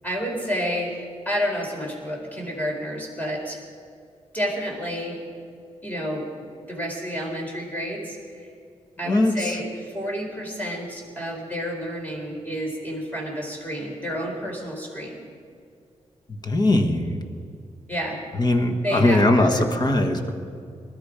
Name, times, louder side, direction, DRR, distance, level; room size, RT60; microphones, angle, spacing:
voice 1, 0.0-3.6 4.3-5.2 5.8-6.3 6.6-8.5 9.0-15.2 17.9-18.2 18.8-19.6, equal, 15° left, -1 dB, 4.2 m, -30 dB
voice 2, 16.4-17.2 18.4-20.3, left 1 dB, 35° left, 4 dB, 1.5 m, -20 dB
20.5 x 12.5 x 5.1 m, 2.4 s
cardioid pair, 95°, 12 cm